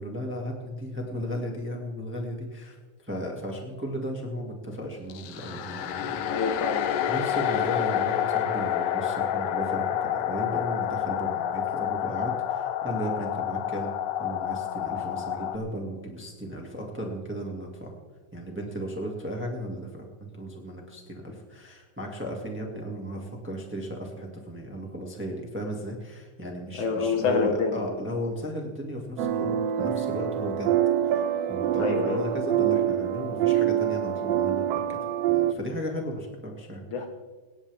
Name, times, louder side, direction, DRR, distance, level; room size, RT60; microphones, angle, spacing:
voice 1, 0.0-6.6 7.1-13.9 14.2-17.9 18.3-30.7 31.1-35.0 35.3-36.8, equal, 5° right, 0 dB, 1.8 m, -35 dB
sound 1, 5.1-15.6, left 10 dB, 90° left, 2.5 m, -28 dB
voice 2, 6.3-6.9 26.8-27.9 31.8-32.2 36.9-37.1, left 4 dB, 70° left, 4 dB, 2.9 m, -27 dB
sound 2, 29.2-35.5, right 10 dB, 80° right, 1.4 m, -25 dB
26.5 x 10.0 x 3.6 m, 1.4 s
omnidirectional pair, 3.7 m